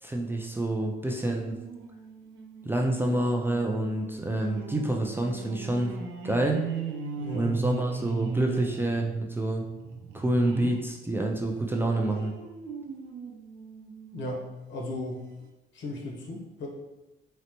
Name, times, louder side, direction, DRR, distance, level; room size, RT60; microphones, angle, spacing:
voice 1, 0.0-1.6 2.6-5.9 6.2-6.6 7.3-9.6 10.1-12.3, right 1 dB, 10° right, 1 dB, 0.3 m, -27 dB
sound 1, 1.3-10.9 11.3-14.4 14.9-15.0 15.3-15.4, right 5 dB, 80° right, 0.5 m, -38 dB
voice 2, 7.2-7.6 14.1-15.3 15.7-16.7, left 1 dB, 70° left, 0 dB, 0.8 m, -36 dB
3.9 x 2.1 x 2.9 m, 1.0 s
cardioid pair, 90°, 20 cm